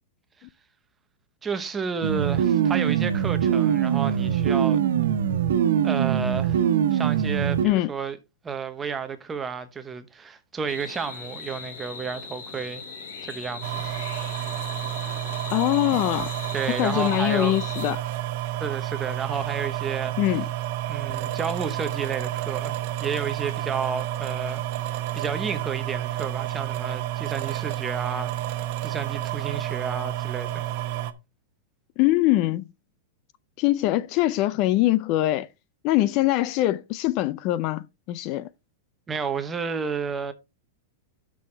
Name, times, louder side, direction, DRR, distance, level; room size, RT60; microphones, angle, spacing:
voice 1, 1.4-4.8 5.8-8.2 8.4-12.8 13.2-13.9 16.5-17.6 18.6-20.1 20.9-24.6 24.9-28.3 28.8-30.6 39.1-40.3, right 5 dB, 15° right, 0.9 m, -31 dB
sound 1, 2.0-7.7, right 9 dB, 80° right, 1.2 m, -22 dB
sound 2, 10.7-17.9, left 5 dB, 70° left, 2.9 m, -39 dB
sound 3, 13.6-31.1, right 13 dB, 45° right, 1.0 m, -30 dB
voice 2, 15.5-16.3 16.8-18.0 20.2-20.4 32.0-32.6 33.6-35.5 35.8-38.5, left 16 dB, 40° left, 0.4 m, -23 dB
11.0 x 6.2 x 3.3 m
supercardioid pair, 160°, 0 cm